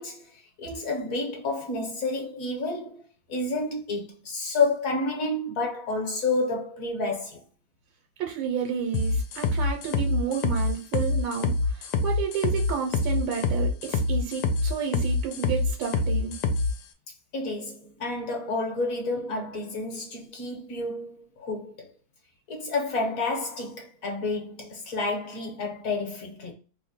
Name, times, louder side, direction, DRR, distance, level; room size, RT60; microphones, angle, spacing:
voice 1, 0.0-7.4 17.3-21.9 22.5-26.5, left 3 dB, 55° left, 1.1 m, -30 dB
voice 2, 8.2-16.4, right 7 dB, 85° right, 1.5 m, -31 dB
sound 1, 8.9-16.7, left 3 dB, 80° left, 1.3 m, -25 dB
3.3 x 2.1 x 4.0 m
omnidirectional pair, 2.0 m